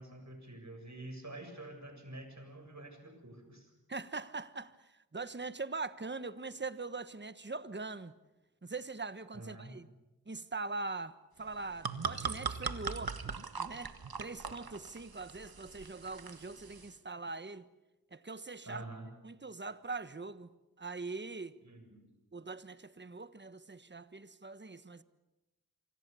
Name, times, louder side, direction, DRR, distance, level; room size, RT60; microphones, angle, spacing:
voice 1, 0.0-3.7 9.3-9.7 18.6-19.1 21.6-22.1, right 2 dB, 50° right, 7.4 m, -47 dB
voice 2, 3.9-8.1 8.6-9.9 10.3-13.9 14.2-17.6 18.1-18.8 19.2-20.5 20.8-21.6 22.3-25.0, right 3 dB, 30° right, 1.2 m, -42 dB
sound 1, 11.5-16.9, right 5 dB, 75° right, 1.5 m, -40 dB
27.5 x 26.0 x 7.0 m
wide cardioid pair, 45°, 37 cm